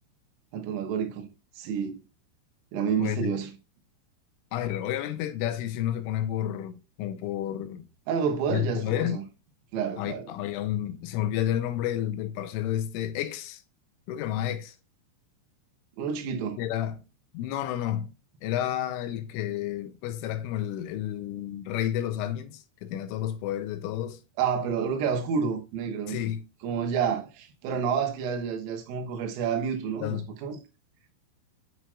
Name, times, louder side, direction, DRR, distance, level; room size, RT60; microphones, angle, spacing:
voice 1, 0.5-1.3 1.6-2.0 2.7-3.5 8.1-9.2 9.7-10.3 16.0-16.6 24.4-26.2 26.6-30.6, right 6 dB, 85° right, 3.8 m, -29 dB
voice 2, 3.0-3.3 4.5-7.9 8.5-9.2 10.0-13.6 14.1-14.8 16.6-17.0 17.3-18.1 18.4-24.2 26.1-26.4 30.0-30.2, left 11 dB, 85° left, 3.2 m, -30 dB
9.4 x 6.1 x 2.2 m
omnidirectional pair, 5.7 m